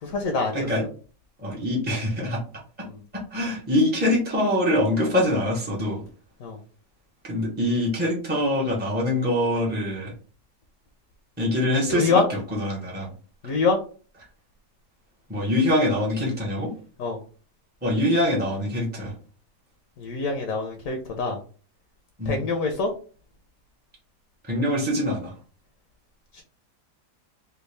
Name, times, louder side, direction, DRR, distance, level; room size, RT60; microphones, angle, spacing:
voice 1, 0.0-0.7 2.8-3.0 6.4-6.6 11.9-12.3 13.4-13.8 17.0-17.2 20.0-21.4 22.3-22.9 26.3-26.4, left 3 dB, 65° left, 4 dB, 0.9 m, -25 dB
voice 2, 0.5-0.8 1.4-2.4 3.3-6.0 7.2-10.1 11.4-12.2 12.5-13.1 15.3-16.7 17.8-19.1 22.2-22.4 24.5-25.3, left 1 dB, 10° right, -4 dB, 0.4 m, -24 dB
3.5 x 2.3 x 3.2 m, 0.39 s
omnidirectional pair, 1.8 m